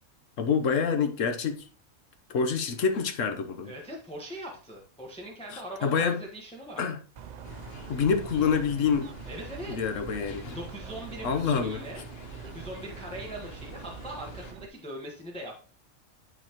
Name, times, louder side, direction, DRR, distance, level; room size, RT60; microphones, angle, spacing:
voice 1, 0.4-1.6 2.3-3.7 5.5-6.2 6.8-7.0 7.9-9.1 9.7-10.5 11.2-11.8, left 6 dB, 75° left, 1.2 m, -27 dB
voice 2, 3.6-6.8 9.2-9.8 10.5-12.0 12.5-15.5, right 1 dB, 5° left, 1.2 m, -41 dB
sound 1, 7.2-14.7, right 7 dB, 65° right, 0.4 m, -43 dB
sound 2, 7.4-14.5, left 5 dB, 55° left, 1.0 m, -48 dB
11.0 x 4.1 x 3.0 m
omnidirectional pair, 1.4 m